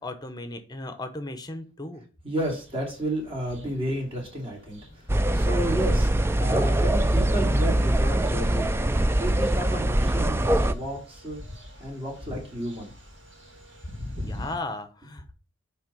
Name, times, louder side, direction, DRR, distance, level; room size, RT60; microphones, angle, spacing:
voice 1, 0.0-2.0 14.2-15.3, left 2 dB, 20° left, 9 dB, 0.9 m, -36 dB
voice 2, 2.2-6.1 6.4-8.7 9.1-11.4 11.8-12.9, right 1 dB, 30° right, -1 dB, 2.7 m, -32 dB
sound 1, 2.4-14.6, left 1 dB, 65° right, 2.7 m, -44 dB
sound 2, 5.1-10.7, right 1 dB, 10° right, 0.3 m, -23 dB
9.5 x 3.5 x 5.4 m, 0.37 s
head